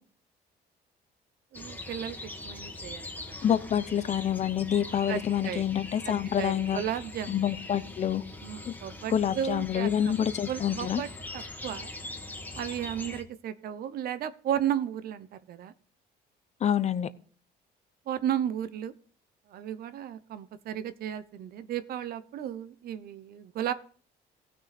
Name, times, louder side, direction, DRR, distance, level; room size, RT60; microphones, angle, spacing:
sound 1, 1.5-13.2, left 2 dB, 10° left, 1.8 m, -42 dB
voice 1, 1.5-3.4 5.1-5.7 6.0-7.4 8.4-10.1 10.5-11.1 11.3-11.9 12.6-15.7 18.1-18.9 19.5-23.7, right 10 dB, 65° right, 14 dB, 0.9 m, -34 dB
voice 2, 3.4-6.8 7.3-8.2 8.6-8.7 9.1-11.0 16.6-17.1, left 9 dB, 40° left, 14 dB, 0.7 m, -27 dB
15.5 x 6.4 x 4.2 m, 0.44 s
cardioid pair, 110°, 17 cm